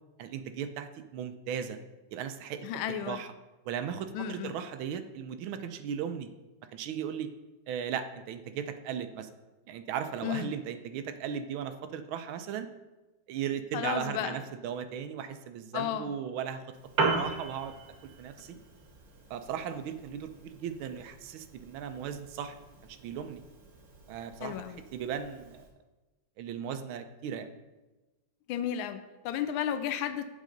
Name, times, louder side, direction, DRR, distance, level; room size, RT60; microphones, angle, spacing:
voice 1, 0.2-1.8 2.1-2.7 3.1-3.3 3.6-6.3 6.7-7.3 7.7-9.3 9.7-12.7 13.3-16.7 17.1-17.7 18.2-18.6 19.3-22.6 22.8-23.4 24.1-24.5 24.9-25.6 26.4-27.5, right 8 dB, 85° right, 9 dB, 1.4 m, -37 dB
voice 2, 2.6-3.2 4.1-4.6 10.2-10.5 13.7-14.4 15.7-16.1 24.4-24.8 28.5-30.3, left 9 dB, 85° left, 10 dB, 1.4 m, -33 dB
Piano, 16.7-25.7, right 3 dB, 50° right, 1.5 m, -38 dB
8.2 x 6.3 x 3.8 m, 1.1 s
omnidirectional pair, 2.2 m